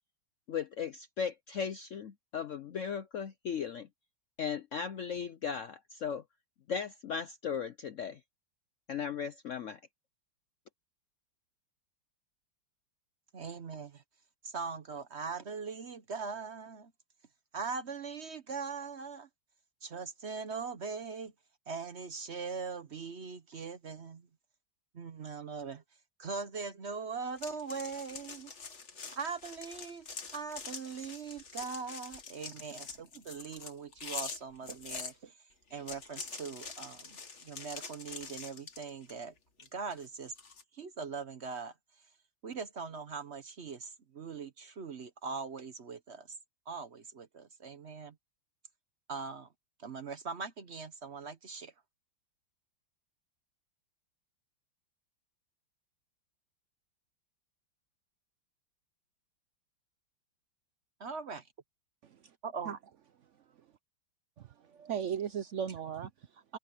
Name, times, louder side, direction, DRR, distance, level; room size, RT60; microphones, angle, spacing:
voice 1, 0.5-3.9 4.4-6.2 6.7-8.2 8.9-9.8, left 7 dB, 80° left, 0.7 m, -37 dB
voice 2, 13.3-14.0 14.4-16.9 17.5-19.3 19.8-21.3 21.7-24.3 24.9-25.8 26.2-28.5 29.1-30.1 30.3-39.3 39.7-40.3 40.7-42.1 42.4-46.4 46.7-48.2 49.1-49.5 49.8-51.7 61.0-61.5 62.4-62.7, right 5 dB, 50° right, 0.9 m, -41 dB
sound 1, 27.4-35.1 35.7-39.2 39.6-40.6, left 5 dB, 40° left, 1.8 m, -45 dB
voice 3, 62.0-62.3 62.7-62.8 64.4-66.6, right 8 dB, 80° right, 0.6 m, -38 dB
omnidirectional pair, 2.2 m